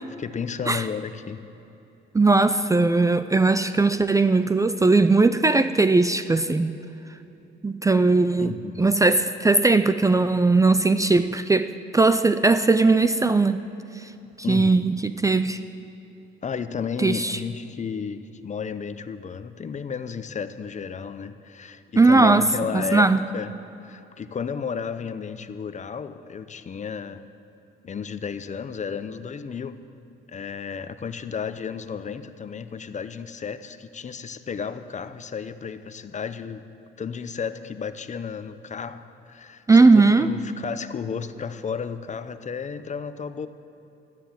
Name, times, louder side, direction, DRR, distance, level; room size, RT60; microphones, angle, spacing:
voice 1, 0.0-1.4 8.4-8.9 14.4-14.9 16.4-23.5 23.8-27.2 27.8-29.8 30.3-36.6 37.0-39.6 39.9-43.5, left 6 dB, 35° left, 11 dB, 0.7 m, -33 dB
voice 2, 2.1-6.8 7.6-8.5 8.8-13.6 14.5-15.6 17.0-17.4 22.0-22.5 22.7-23.2 39.7-40.3, right 3 dB, 15° right, 11 dB, 0.4 m, -19 dB
13.0 x 10.5 x 7.5 m, 3.0 s
cardioid pair, 90°, 20 cm